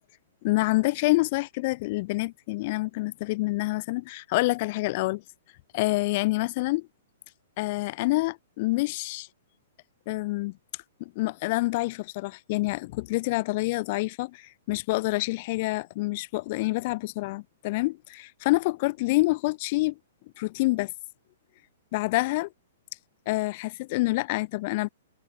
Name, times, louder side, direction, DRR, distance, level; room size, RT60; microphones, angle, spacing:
voice 1, 0.4-5.2 5.7-6.9 7.6-9.3 10.1-10.6 11.0-20.0 20.4-20.9 21.9-22.5 23.3-24.9, left 22 dB, 45° left, 2.8 m, -27 dB
hypercardioid pair, 115°, 0 cm